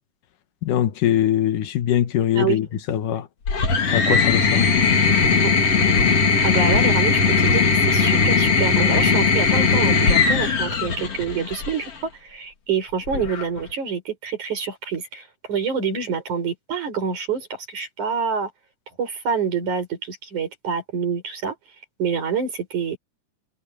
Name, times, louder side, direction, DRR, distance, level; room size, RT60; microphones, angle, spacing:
voice 1, 0.6-3.3 3.9-4.7, left 11 dB, 80° left, 2.8 m, -22 dB
sound 1, 3.5-11.9 13.1-13.7, left 5 dB, 50° left, 3.7 m, -19 dB
voice 2, 6.4-18.5 19.0-21.6 22.0-23.0, right 6 dB, 65° right, 7.2 m, -27 dB
omnidirectional pair, 3.7 m